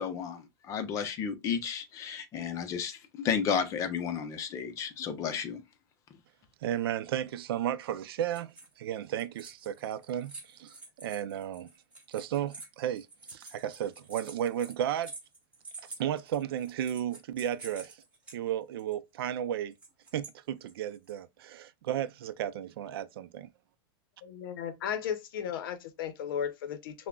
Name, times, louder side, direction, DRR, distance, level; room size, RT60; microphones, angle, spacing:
voice 1, 0.0-5.6, left 7 dB, 25° left, 0.6 m, -33 dB
voice 2, 6.6-11.7 12.1-13.1 13.3-15.1 16.0-18.0 18.3-19.7 20.1-23.5, right 10 dB, 75° right, 0.4 m, -34 dB
sound 1, 8.2-8.8 9.1-18.3 18.8-18.9 19.7-20.3 20.7-21.2, right 3 dB, 10° right, 1.2 m, -48 dB
voice 3, 24.2-27.1, left 8 dB, 65° left, 0.6 m, -35 dB
5.7 x 2.1 x 2.2 m
supercardioid pair, 155°, 12 cm